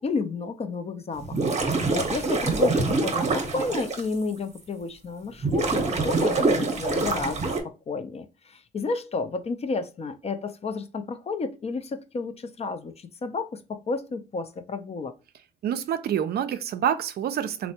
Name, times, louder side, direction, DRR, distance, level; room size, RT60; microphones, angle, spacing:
voice 1, 0.0-15.1, left 4 dB, 35° left, 0.4 m, -32 dB
sound 1, 1.2-4.0 4.6-4.7 5.4-7.6, right 3 dB, 35° right, 0.8 m, -25 dB
voice 2, 15.6-17.7, right 9 dB, 60° right, 0.4 m, -27 dB
3.2 x 2.1 x 2.7 m
supercardioid pair, 65°, 19 cm